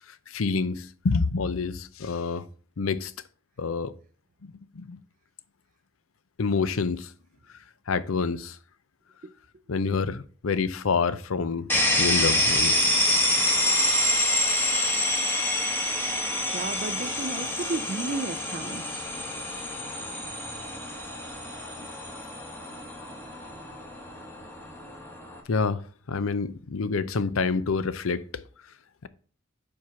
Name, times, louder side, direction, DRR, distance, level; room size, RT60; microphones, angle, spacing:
voice 1, 0.3-2.4 2.8-3.1 3.6-3.9 4.7-5.0 6.4-7.1 7.9-8.6 9.7-11.7 12.0-12.9 21.8-21.9 25.5-25.8 26.1-28.4, left 4 dB, 85° left, 0.6 m, -27 dB
sound 1, 11.7-25.4, left 1 dB, 10° left, 1.3 m, -27 dB
voice 2, 16.5-18.8, right 3 dB, 40° right, 0.4 m, -33 dB
7.5 x 4.6 x 5.6 m
head